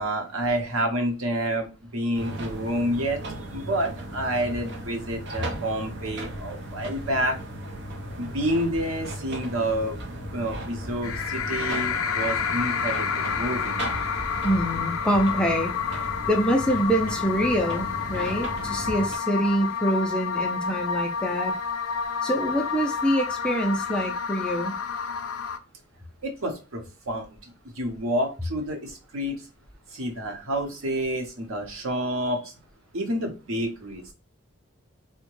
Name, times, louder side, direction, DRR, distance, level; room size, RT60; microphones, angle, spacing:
voice 1, 0.0-3.2 3.5-7.4 8.2-10.0 10.3-13.8 26.2-27.4 27.8-29.4 29.9-32.5 32.9-34.1, right 1 dB, 85° right, 3 dB, 0.9 m, -29 dB
sound 1, 2.1-19.2, right 1 dB, 55° right, 0.7 m, -36 dB
sound 2, 11.0-25.6, left 6 dB, 85° left, 0.4 m, -29 dB
voice 2, 14.4-15.7 16.3-21.6 22.2-24.8, equal, 5° left, 2 dB, 0.4 m, -25 dB
3.4 x 2.2 x 3.0 m, 0.31 s
head